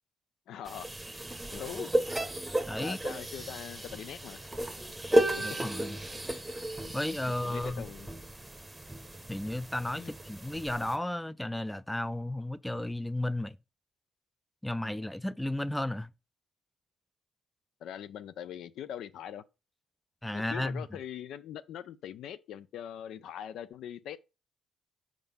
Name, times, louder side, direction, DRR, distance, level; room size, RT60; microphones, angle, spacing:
voice 1, 0.5-0.9 1.5-1.9 2.8-4.5 7.4-8.1 9.9-10.1 17.8-19.4 20.3-24.2, left 10 dB, 80° left, 0.4 m, -42 dB
sound 1, 0.7-11.0, right 1 dB, 15° right, 0.8 m, -33 dB
voice 2, 2.7-3.0 5.4-6.0 6.9-7.9 9.3-13.6 14.6-16.1 20.2-20.9, left 1 dB, 5° left, 0.4 m, -33 dB
4.8 x 3.7 x 5.4 m
cardioid pair, 90°, 0 cm